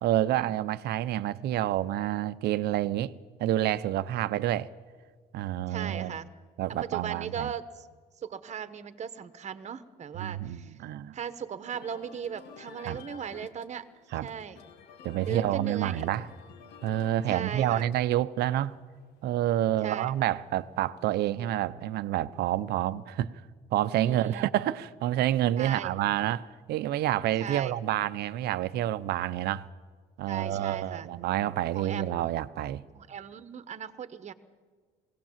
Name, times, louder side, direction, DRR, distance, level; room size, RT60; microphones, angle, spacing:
voice 1, 0.0-3.1 3.4-4.7 5.3-6.2 6.6-7.5 10.2-11.2 12.9-13.0 14.1-14.3 15.0-16.3 16.8-18.8 19.2-23.3 23.7-29.7 30.2-32.8, right 13 dB, 75° right, 0.8 m, -28 dB
voice 2, 5.7-6.3 6.8-7.9 8.2-10.7 11.1-13.8 14.2-14.6 15.2-16.1 17.3-17.9 19.8-20.1 24.0-24.5 25.6-25.9 27.4-27.7 30.2-31.1 31.7-32.3 32.9-34.3, right 8 dB, 45° right, 1.2 m, -38 dB
sound 1, 11.7-21.1, left 6 dB, 80° left, 1.5 m, -52 dB
22.0 x 17.5 x 7.4 m
cardioid pair, 110°, 17 cm